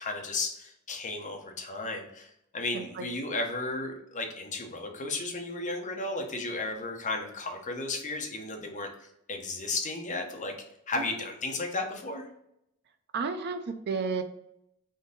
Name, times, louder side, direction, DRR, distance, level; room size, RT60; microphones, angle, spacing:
voice 1, 0.0-8.9 9.3-10.5 10.9-12.3, left 2 dB, 35° left, 2 dB, 0.7 m, -34 dB
voice 2, 2.7-3.0 11.0-11.2 13.1-14.2, right 5 dB, 50° right, 8 dB, 0.5 m, -32 dB
3.7 x 2.7 x 3.8 m, 0.79 s
head